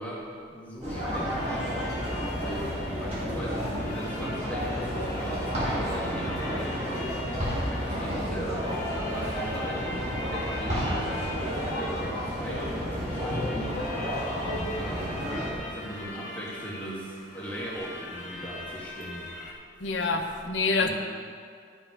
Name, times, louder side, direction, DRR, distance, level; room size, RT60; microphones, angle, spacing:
voice 1, 0.0-7.2 7.7-8.7 9.1-13.9 14.8-15.4 15.6-19.3 20.0-20.2 20.8-20.9, equal, 10° left, -7 dB, 1.6 m, -38 dB
sound 1, 0.8-15.5, equal, 35° right, 2.4 m, -31 dB
sound 2, 1.4-19.5, left 2 dB, 45° left, 1.5 m, -42 dB
voice 2, 19.8-20.9, left 3 dB, 85° left, 3 dB, 0.9 m, -26 dB
12.0 x 5.4 x 4.8 m, 2.2 s
head